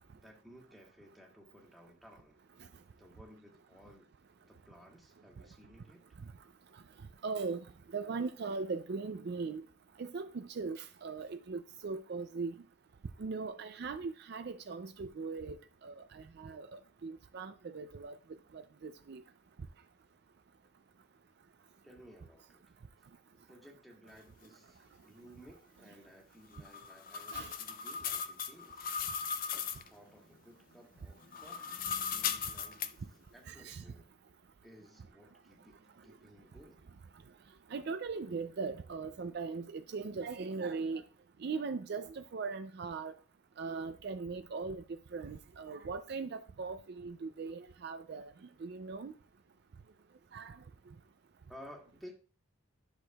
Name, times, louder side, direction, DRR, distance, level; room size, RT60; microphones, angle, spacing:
voice 1, 0.1-2.4 3.0-4.1 4.4-6.2 21.8-22.7 23.3-28.9 29.5-34.1 34.6-36.9 51.5-52.1, equal, ahead, 1.5 m, -57 dB
voice 2, 7.2-7.6 7.9-9.6 10.0-12.6 13.2-15.6 15.8-18.1 18.5-19.2 27.3-27.5 33.5-33.8 37.7-41.0 41.4-43.1 43.6-44.8 45.1-48.3 48.6-49.1 50.3-50.6, right 4 dB, 50° right, 0.4 m, -39 dB
sound 1, 26.5-29.9 31.2-32.9, left 7 dB, 40° left, 0.4 m, -37 dB
10.0 x 6.2 x 2.3 m
head